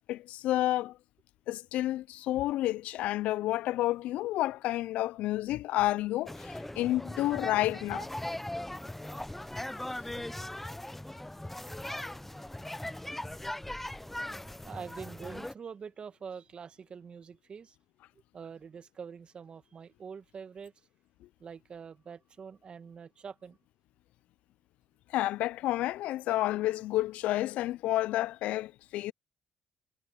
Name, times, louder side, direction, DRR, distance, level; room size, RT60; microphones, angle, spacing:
voice 1, 0.1-1.0 1.5-8.1 25.1-29.1, left 15 dB, 75° left, 0.5 m, -30 dB
sound 1, 6.3-15.5, left 1 dB, 10° left, 0.8 m, -39 dB
voice 2, 14.6-17.8 18.3-20.7 21.4-23.6, right 6 dB, 45° right, 1.9 m, -45 dB
hypercardioid pair, 55°, 2 cm